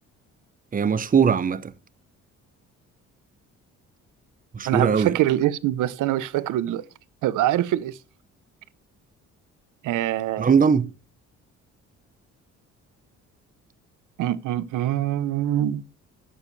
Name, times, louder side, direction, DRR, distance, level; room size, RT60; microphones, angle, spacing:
voice 1, 0.7-1.7 4.5-5.2 10.4-10.9, right 6 dB, 30° right, 0.8 m, -20 dB
voice 2, 4.7-6.8 7.2-8.0 9.8-10.5 14.2-15.8, right 13 dB, 85° right, 0.8 m, -24 dB
14.0 x 10.5 x 3.2 m
cardioid pair, 90°, 30 cm